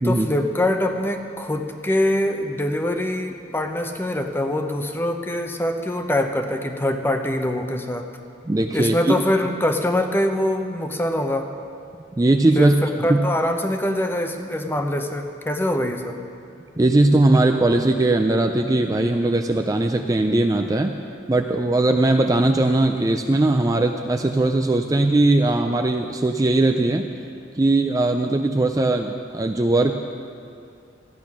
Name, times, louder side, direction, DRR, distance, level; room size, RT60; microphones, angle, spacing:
voice 1, 0.0-8.1 8.7-11.5 12.5-16.2, left 1 dB, 10° left, 5 dB, 0.7 m, -24 dB
voice 2, 8.5-9.2 12.2-12.7 13.1-13.2 16.8-20.9 21.3-27.0 27.6-29.9, right 2 dB, 20° right, 4 dB, 0.4 m, -19 dB
13.5 x 10.0 x 6.1 m, 2.4 s
head